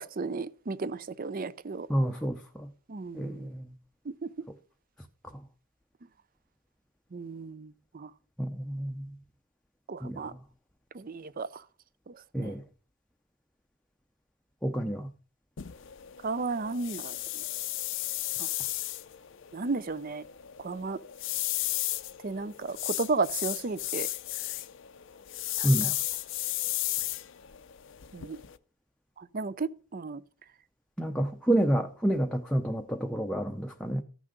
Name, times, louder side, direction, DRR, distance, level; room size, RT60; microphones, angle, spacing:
voice 1, 0.0-1.9 2.9-3.5 4.1-4.3 7.1-8.1 9.9-10.3 10.9-11.6 12.1-12.5 16.2-17.2 18.4-18.5 19.5-20.2 20.6-21.0 22.2-24.1 25.6-25.9 28.1-28.4 29.2-30.2, right 4 dB, 40° right, 0.5 m, -34 dB
voice 2, 1.9-2.7 3.1-3.7 8.4-9.1 10.0-10.2 12.3-12.6 14.6-15.1 25.6-25.9 31.0-34.0, right 1 dB, 5° left, 0.6 m, -29 dB
sound 1, 15.6-28.6, left 15 dB, 55° left, 0.5 m, -34 dB
14.5 x 6.2 x 5.1 m
head